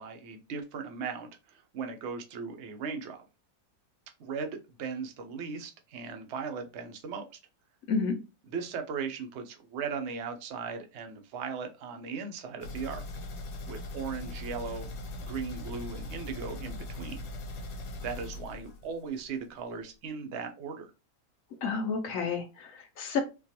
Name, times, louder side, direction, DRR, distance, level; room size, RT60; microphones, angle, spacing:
voice 1, 0.0-3.2 4.2-7.3 8.5-13.1 13.7-14.9 15.2-17.3 18.0-20.9, right 5 dB, 65° right, 5 dB, 0.6 m, -38 dB
sound 1, 12.6-19.3 19.6-19.7 20.1-20.2, left 1 dB, 85° left, 1.5 m, -40 dB
voice 2, 21.6-23.2, left 5 dB, 65° left, 4 dB, 0.9 m, -30 dB
4.3 x 2.3 x 2.8 m, 0.28 s
omnidirectional pair, 1.9 m